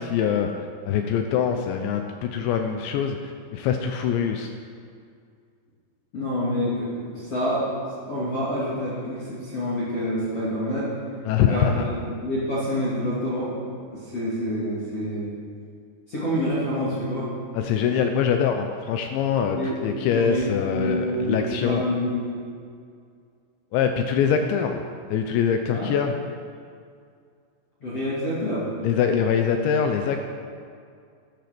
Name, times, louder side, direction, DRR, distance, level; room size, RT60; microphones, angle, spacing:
voice 1, 0.0-4.5 11.3-11.7 17.5-19.6 19.8-21.8 23.7-24.8 25.1-26.1 28.8-30.2, left 7 dB, 80° left, 5 dB, 2.7 m, -24 dB
voice 2, 6.1-7.7 8.1-11.0 11.5-13.6 13.9-15.3 16.1-17.3 19.5-22.5 24.5-24.6 25.7-25.9 27.8-28.7, equal, 40° left, -9 dB, 2.7 m, -27 dB
13.0 x 12.0 x 6.0 m, 2.2 s
omnidirectional pair, 5.9 m